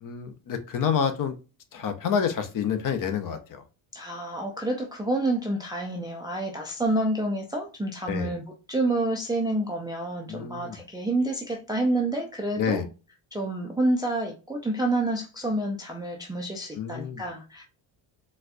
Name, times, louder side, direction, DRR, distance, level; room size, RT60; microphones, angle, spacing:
voice 1, 0.0-1.3 1.7-3.6 8.1-8.3 10.3-10.8 12.6-12.8 16.8-17.2, left 7 dB, 40° left, 0.6 m, -28 dB
voice 2, 3.9-8.4 8.7-12.8 13.3-17.6, right 2 dB, 10° right, 0.3 m, -28 dB
4.2 x 2.3 x 2.5 m
cardioid pair, 130°, 49 cm